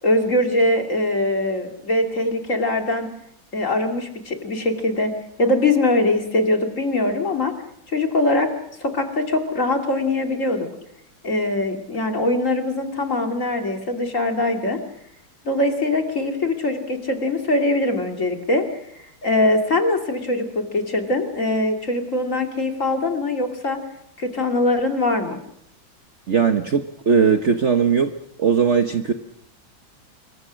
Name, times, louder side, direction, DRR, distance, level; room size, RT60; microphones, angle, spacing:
voice 1, 0.0-3.1 3.5-7.5 7.9-8.5 8.8-10.7 11.2-14.8 15.4-18.6 19.2-23.8 24.2-25.4, left 2 dB, 40° left, 4 dB, 3.0 m, -22 dB
voice 2, 26.3-28.1 28.4-29.1, right 6 dB, 45° right, 7 dB, 1.2 m, -18 dB
26.5 x 23.5 x 6.4 m, 0.73 s
omnidirectional pair, 2.1 m